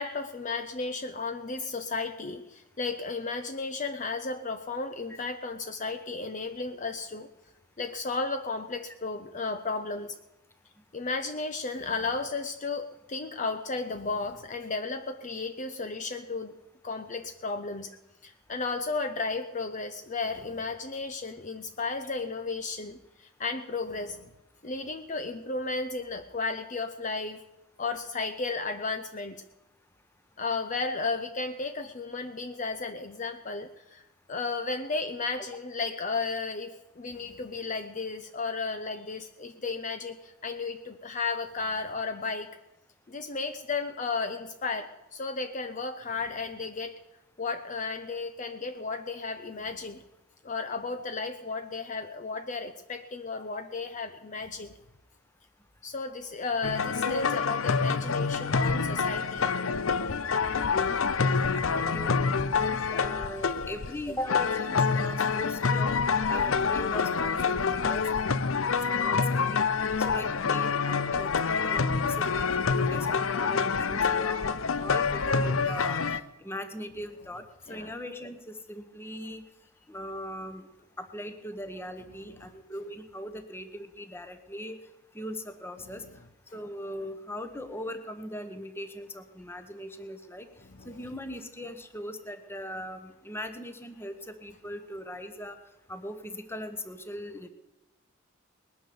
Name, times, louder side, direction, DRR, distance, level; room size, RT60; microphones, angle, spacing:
voice 1, 0.0-7.3 7.8-10.2 10.9-16.5 16.8-17.9 18.2-24.3 24.6-27.4 27.8-29.4 30.4-34.0 34.3-42.6 43.1-46.9 47.4-50.0 50.4-54.8 55.8-59.5 61.7-61.9 62.1-62.2 67.7-67.8 77.7-77.9 82.3-82.5 85.8-86.2 90.6-90.9, left 4 dB, 35° left, 7 dB, 0.8 m, -34 dB
sound 1, 56.6-76.2, left 5 dB, 75° left, 0.7 m, -27 dB
voice 2, 61.2-65.9 66.3-68.4 68.9-69.6 70.1-71.3 71.7-71.8 72.2-76.0 76.4-79.4 79.9-80.7 81.0-84.8 85.1-86.0 86.5-90.5 90.8-95.6 95.9-97.5, left 1 dB, 10° left, 8 dB, 1.2 m, -40 dB
20.0 x 9.8 x 7.0 m, 0.92 s
head